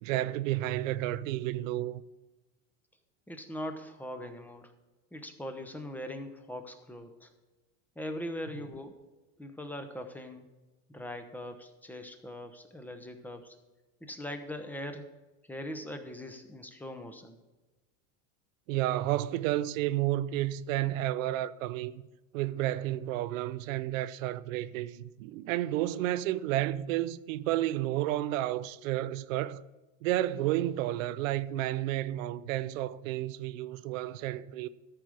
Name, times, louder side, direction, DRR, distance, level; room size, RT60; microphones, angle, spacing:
voice 1, 0.0-2.0 18.7-22.0 22.3-29.6 30.0-34.7, right 14 dB, 80° right, 0.6 m, -31 dB
voice 2, 3.3-4.7 5.1-7.3 8.0-9.0 9.4-10.5 10.9-13.6 14.0-15.1 15.5-17.4, left 1 dB, 5° left, 0.9 m, -41 dB
13.5 x 5.0 x 6.3 m
supercardioid pair, 140°, 39 cm